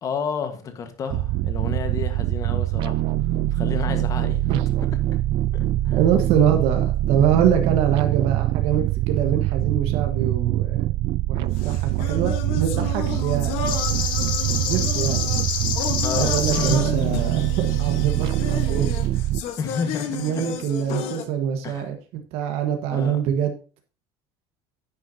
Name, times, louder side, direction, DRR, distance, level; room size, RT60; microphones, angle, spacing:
voice 1, 0.0-3.0 3.5-4.5 5.5-6.0 13.1-13.2 16.0-16.8 19.6-20.4 21.6-21.9 22.9-23.2, left 6 dB, 30° left, 1.4 m, -31 dB
sound 1, 1.1-19.4, right 15 dB, 50° right, 0.3 m, -24 dB
voice 2, 5.9-10.8 11.3-13.6 14.6-15.3 16.1-18.9 20.1-23.5, right 9 dB, 65° right, 1.4 m, -24 dB
sound 2, 11.5-21.3, left 7 dB, 70° left, 1.3 m, -32 dB
sound 3, 13.7-19.1, left 8 dB, 50° left, 1.4 m, -29 dB
9.8 x 9.8 x 2.8 m
cardioid pair, 160°, 11 cm